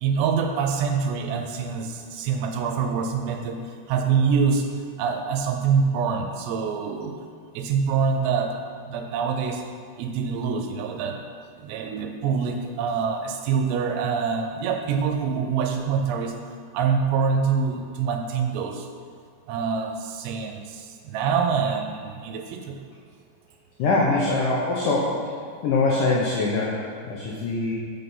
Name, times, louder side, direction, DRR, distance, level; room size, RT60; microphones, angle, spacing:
voice 1, 0.0-3.6 3.9-4.7 5.0-7.2 7.5-8.6 8.9-9.6 10.0-11.2 11.6-16.3 16.7-18.9 19.5-22.8, right 6 dB, 90° right, 4 dB, 2.9 m, -25 dB
voice 2, 23.8-25.2 25.6-27.7, left 3 dB, 80° left, -4 dB, 1.9 m, -23 dB
6.5 x 6.1 x 5.5 m, 2.1 s
omnidirectional pair, 4.7 m